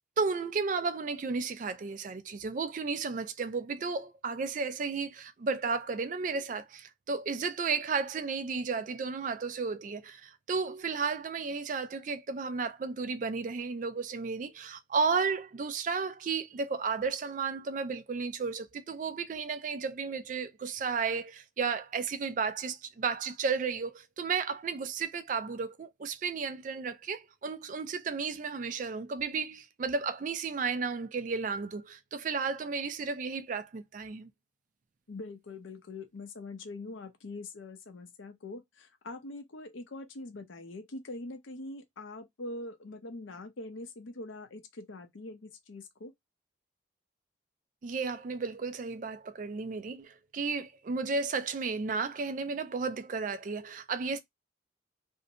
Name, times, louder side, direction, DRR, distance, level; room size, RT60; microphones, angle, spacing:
voice 1, 0.2-34.3 47.8-54.2, right 5 dB, 45° right, 0.3 m, -33 dB
voice 2, 35.1-46.1, left 2 dB, 85° left, 0.6 m, -43 dB
2.6 x 2.1 x 2.7 m
head